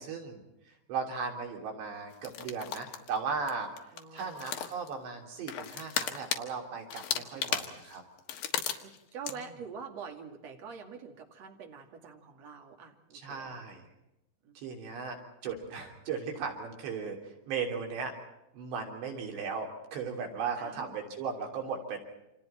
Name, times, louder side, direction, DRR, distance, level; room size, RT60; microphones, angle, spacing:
voice 1, 0.0-8.0 13.1-13.9 14.6-18.2 18.5-22.0, right 5 dB, 75° right, 2 dB, 5.3 m, -37 dB
sound 1, 2.2-3.2 3.5-3.6 3.8-4.9 5.5-6.4 6.9-9.0 9.2-9.4, left 9 dB, 65° left, 3.0 m, -35 dB
voice 2, 3.9-4.7 7.1-7.5 8.8-13.7 14.4-14.6 20.6-21.0, right 6 dB, 45° right, 2 dB, 3.0 m, -46 dB
29.5 x 27.0 x 4.4 m, 0.92 s
omnidirectional pair, 5.1 m